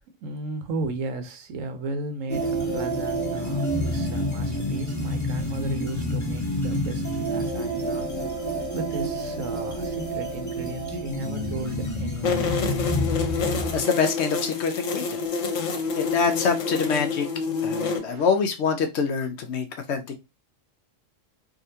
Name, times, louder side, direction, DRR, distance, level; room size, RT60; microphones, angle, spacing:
voice 1, 0.2-8.5 8.7-12.5 13.2-13.5 18.0-18.3, right 3 dB, 85° right, 1.1 m, -35 dB
sound 1, 2.3-13.8, equal, 20° left, 0.6 m, -28 dB
sound 2, 12.2-18.0, left 5 dB, 85° left, 1.1 m, -28 dB
voice 2, 13.7-15.2 15.9-17.3 17.6-20.2, left 5 dB, 70° left, 0.8 m, -25 dB
3.7 x 2.4 x 2.7 m
omnidirectional pair, 1.3 m